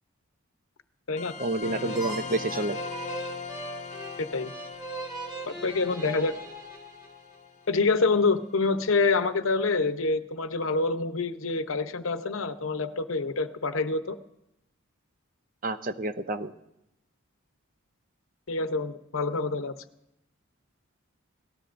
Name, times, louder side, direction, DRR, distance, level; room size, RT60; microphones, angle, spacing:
sound 1, 1.2-8.3, left 5 dB, 35° left, 0.5 m, -40 dB
voice 1, 1.4-2.8 15.6-16.5, right 2 dB, 40° right, 10 dB, 0.6 m, -29 dB
sound 2, 1.8-7.4, right 2 dB, 15° right, 1.6 m, -40 dB
voice 2, 4.2-4.5 5.4-6.3 7.7-14.2 18.5-19.7, left 3 dB, 65° left, 10 dB, 0.8 m, -26 dB
25.5 x 18.0 x 2.6 m, 0.85 s
head